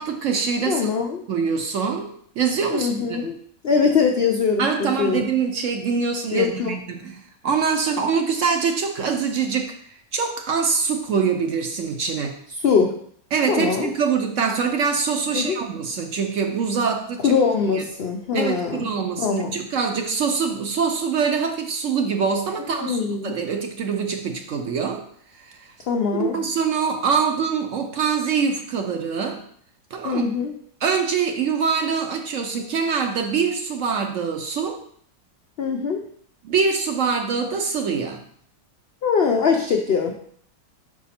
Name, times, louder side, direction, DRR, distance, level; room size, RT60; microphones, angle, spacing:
voice 1, 0.0-0.9 1.3-2.1 2.4-3.2 4.6-9.7 10.1-12.4 13.3-17.3 17.7-17.8 18.3-25.0 25.4-25.7 26.3-29.4 29.9-30.3 30.8-34.8 36.4-38.2, right 6 dB, 60° right, 4 dB, 0.8 m, -24 dB
voice 2, 0.7-1.2 2.7-3.3 3.6-5.3 6.3-6.7 12.6-12.9 13.5-13.9 15.3-15.6 17.2-18.9 19.2-19.5 22.8-23.3 25.9-26.4 30.0-30.5 35.6-36.0 39.0-40.1, left 5 dB, 85° left, 2 dB, 0.5 m, -22 dB
5.0 x 4.7 x 4.2 m, 0.62 s
omnidirectional pair, 1.7 m